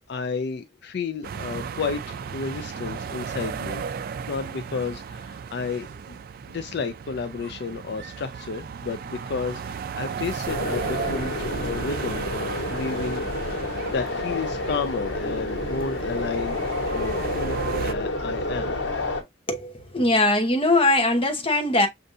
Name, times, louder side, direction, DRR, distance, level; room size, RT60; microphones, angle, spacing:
voice 1, 0.1-3.8 4.3-6.2 6.5-13.3 13.9-16.6 16.9-18.8, left 5 dB, 60° left, 0.4 m, -32 dB
sound 1, 1.2-17.9, right 6 dB, 50° right, 0.3 m, -35 dB
sound 2, 10.5-19.2, left 2 dB, 85° left, 1.4 m, -29 dB
voice 2, 19.5-21.9, left 2 dB, 30° left, 0.9 m, -21 dB
6.5 x 2.5 x 2.6 m
head